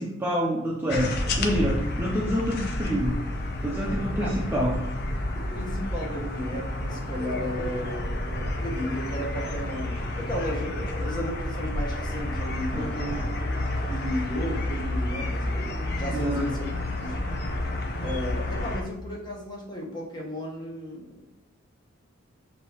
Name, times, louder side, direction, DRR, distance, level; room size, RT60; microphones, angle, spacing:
voice 1, 0.0-3.2 3.6-4.8 12.7-13.3 16.1-16.5, equal, 10° right, -4 dB, 0.4 m, -27 dB
sound 1, 0.9-18.8, left 1 dB, 50° left, 0.5 m, -30 dB
voice 2, 5.3-13.3 13.7-15.7 16.0-16.6 17.0-17.2 18.0-21.3, equal, 20° left, -3 dB, 0.9 m, -34 dB
6.1 x 2.7 x 2.8 m, 0.92 s
head